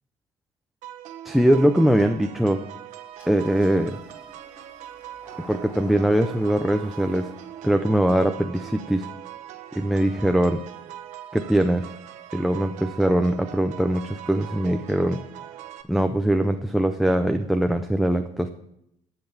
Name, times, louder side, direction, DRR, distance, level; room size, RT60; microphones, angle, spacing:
sound 1, 0.8-15.8, right 12 dB, 75° right, 1.2 m, -41 dB
voice 1, 1.2-2.6 3.3-4.0 5.4-7.3 7.6-9.1 9.7-10.6 11.3-11.9 12.3-15.2 15.9-18.5, right 1 dB, ahead, 5 dB, 0.5 m, -22 dB
Engine starting, 3.2-10.5, equal, 20° left, 5.1 m, -51 dB
12.0 x 7.7 x 7.2 m, 0.80 s
cardioid pair, 160°, 13 cm